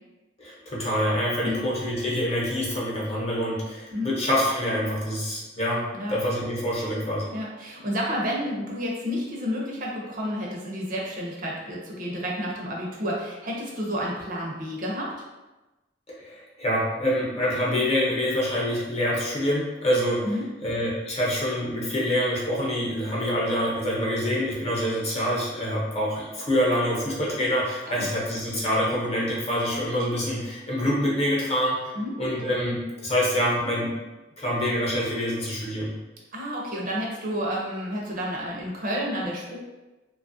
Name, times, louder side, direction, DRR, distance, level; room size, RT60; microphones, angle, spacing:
voice 1, 0.4-7.3 16.1-20.4 20.6-31.9 32.2-33.9 34.4-35.9, equal, 35° left, -5 dB, 0.8 m, -26 dB
voice 2, 7.3-15.1 20.2-20.5 27.9-28.1 32.0-32.1 36.3-39.6, equal, 45° right, -3 dB, 0.6 m, -30 dB
2.9 x 2.3 x 2.6 m, 1.1 s
head